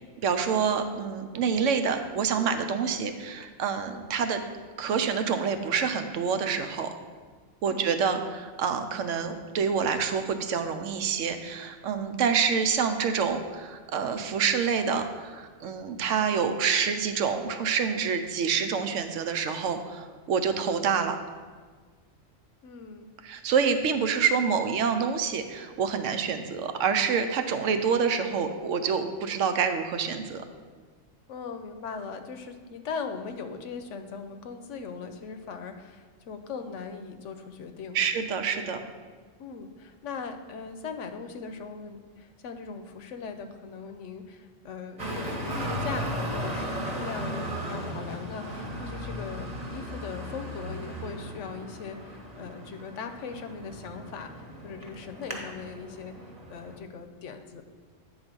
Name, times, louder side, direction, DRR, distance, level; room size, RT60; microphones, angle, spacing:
voice 1, 0.2-4.4 4.8-6.9 7.6-21.2 23.2-30.4 37.9-38.8, right 6 dB, 90° right, 8 dB, 1.0 m, -27 dB
voice 2, 22.6-23.1 31.3-38.1 39.4-56.1 56.5-57.6, left 5 dB, 80° left, 8 dB, 1.0 m, -39 dB
Traffic noise roadway noise, 45.0-56.8, equal, 35° right, 1.1 m, -36 dB
8.7 x 4.0 x 6.1 m, 1.5 s
omnidirectional pair, 1.3 m